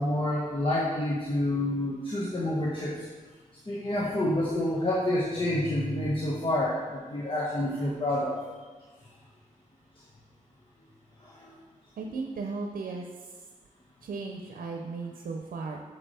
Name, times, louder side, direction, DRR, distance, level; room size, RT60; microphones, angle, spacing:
voice 1, 0.0-3.0 3.7-8.4 11.2-11.5, left 1 dB, 35° left, -6 dB, 1.6 m, -28 dB
voice 2, 12.0-13.3 14.0-15.8, right 4 dB, 90° right, 1 dB, 0.6 m, -36 dB
8.7 x 7.1 x 3.4 m, 1.4 s
cardioid pair, 55°, 14 cm